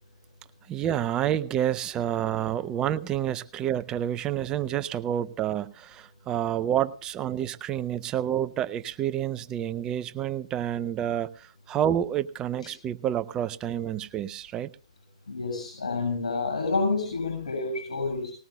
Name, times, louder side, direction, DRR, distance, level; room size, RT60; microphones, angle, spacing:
voice 1, 0.7-14.7, right 10 dB, 20° right, 0.6 m, -29 dB
voice 2, 15.3-18.3, left 3 dB, 85° left, 7.1 m, -29 dB
20.0 x 19.5 x 2.3 m
hypercardioid pair, 140°, 4 cm